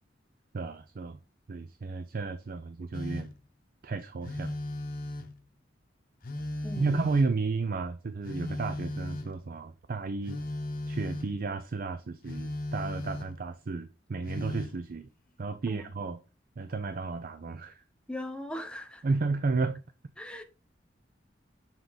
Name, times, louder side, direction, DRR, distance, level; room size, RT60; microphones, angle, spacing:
voice 1, 0.5-1.2 1.5-3.3 3.8-4.5 6.8-10.4 10.9-15.1 15.4-16.2 16.6-17.8 19.0-19.8, right 3 dB, 50° right, 0.5 m, -32 dB
Telephone, 2.9-3.5 4.2-5.5 6.2-7.5 8.2-9.5 10.2-11.4 12.2-13.5 14.2-14.8, left 1 dB, 50° left, 0.8 m, -36 dB
voice 2, 6.6-7.1 15.7-15.9 18.1-19.1 20.2-20.4, left 1 dB, 5° left, 0.8 m, -39 dB
7.2 x 3.7 x 3.9 m
head